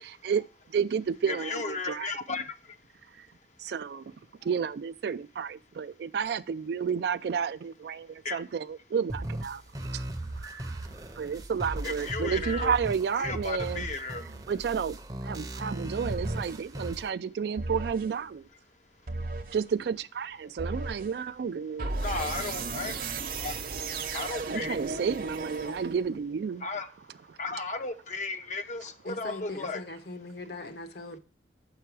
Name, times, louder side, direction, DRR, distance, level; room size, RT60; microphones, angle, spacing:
voice 1, 0.0-0.4 0.7-2.1 3.2-3.3 3.6-4.1 4.4-10.0 10.3-10.9 11.2-13.9 14.5-18.5 19.5-21.9 24.0-24.1 24.5-26.7 27.3-27.4, right 6 dB, 65° right, 0.3 m, -31 dB
voice 2, 1.3-2.4 8.3-8.4 11.8-12.7 13.2-14.2 22.0-23.0 23.4-23.5 24.1-24.8 26.6-26.9 27.4-29.8, left 3 dB, 40° left, 0.6 m, -34 dB
sound 1, 9.1-17.1, right 1 dB, 20° right, 0.6 m, -37 dB
sound 2, 16.0-16.6 17.6-18.1 19.1-19.6 20.6-21.1 21.8-26.2, right 3 dB, 50° right, 0.8 m, -35 dB
voice 3, 29.0-31.2, left 2 dB, 65° left, 1.0 m, -40 dB
6.8 x 5.6 x 4.7 m
head